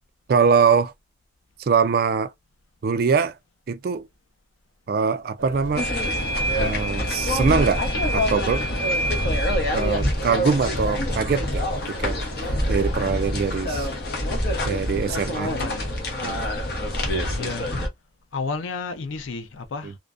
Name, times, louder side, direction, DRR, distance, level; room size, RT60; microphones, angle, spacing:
voice 1, 0.3-0.9 1.6-2.3 2.8-3.3 3.7-4.1 4.9-5.9 6.6-7.9 8.1-8.6 9.7-11.7 12.0-12.2 12.7-13.9 14.6-15.5 16.2-16.5, right 5 dB, 50° right, 0.3 m, -22 dB
sound 1, 5.4-13.3, right 1 dB, 75° right, 0.6 m, -39 dB
sound 2, 5.7-17.9, equal, 55° left, 0.8 m, -25 dB
voice 2, 15.4-15.9 16.3-16.7 17.3-17.8 18.3-20.0, left 4 dB, 80° left, 0.5 m, -33 dB
2.5 x 2.1 x 2.4 m
head